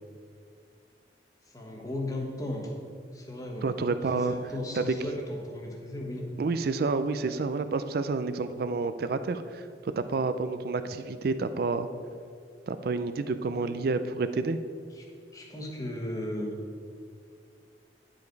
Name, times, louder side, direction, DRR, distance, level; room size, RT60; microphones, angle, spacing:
voice 1, 1.5-2.7 3.1-3.6 4.1-6.2 13.5-13.7 14.9-15.1 15.3-16.5, left 1 dB, 20° left, -1 dB, 1.2 m, -36 dB
voice 2, 3.6-4.4 4.7-4.9 6.4-11.9 12.7-14.6, right 4 dB, 55° right, 11 dB, 0.4 m, -29 dB
10.5 x 5.2 x 4.6 m, 2.3 s
head